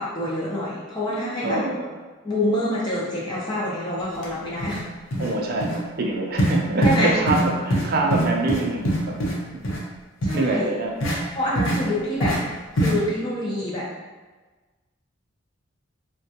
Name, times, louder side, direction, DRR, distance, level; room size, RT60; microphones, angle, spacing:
voice 1, 0.0-1.6 2.2-4.8 6.8-7.2 10.2-10.7 11.3-12.4 12.7-13.9, left 1 dB, 20° left, -7 dB, 0.5 m, -26 dB
voice 2, 1.4-2.0 5.2-9.2 9.5-9.6 10.3-11.0 11.5-11.6, right 2 dB, 45° right, 0 dB, 0.4 m, -25 dB
sound 1, 4.2-4.3 4.6-4.8 5.1-5.3 5.6-5.8 6.4-6.5 6.8-7.0 7.3-7.4 7.7-7.8 8.1-9.3 9.6-9.8 10.2-10.4 11.0-11.2 11.5-11.8 12.2-12.4 12.8-12.9, right 1 dB, 70° left, 0.7 m, -22 dB
3.5 x 2.2 x 2.7 m, 1.3 s
head